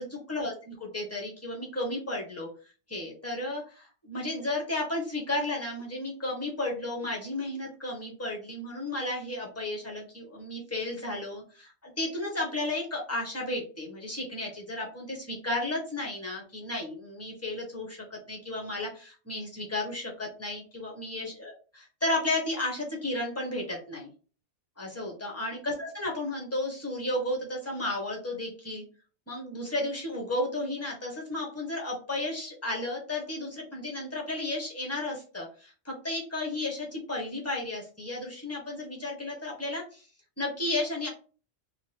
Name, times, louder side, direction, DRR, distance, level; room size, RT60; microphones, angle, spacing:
voice 1, 0.0-2.5 2.9-24.1 24.8-28.8 29.3-40.1 40.4-41.1, left 2 dB, 15° left, -1 dB, 0.9 m, -33 dB
2.9 x 2.3 x 3.1 m, 0.36 s
omnidirectional pair, 1.2 m